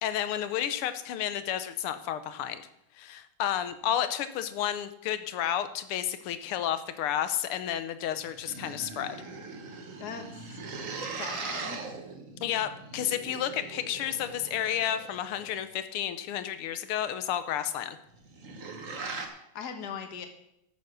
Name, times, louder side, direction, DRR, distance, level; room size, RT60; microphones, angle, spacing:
voice 1, 0.0-2.6 3.0-9.2 12.4-18.0, left 10 dB, 85° left, 12 dB, 1.7 m, -31 dB
sound 1, 8.1-15.7 18.1-19.3, right 4 dB, 45° right, 1.4 m, -40 dB
voice 2, 10.0-10.6 11.1-11.8 18.9-20.3, left 6 dB, 50° left, 6 dB, 1.7 m, -41 dB
12.5 x 7.1 x 6.2 m, 0.81 s
omnidirectional pair, 2.4 m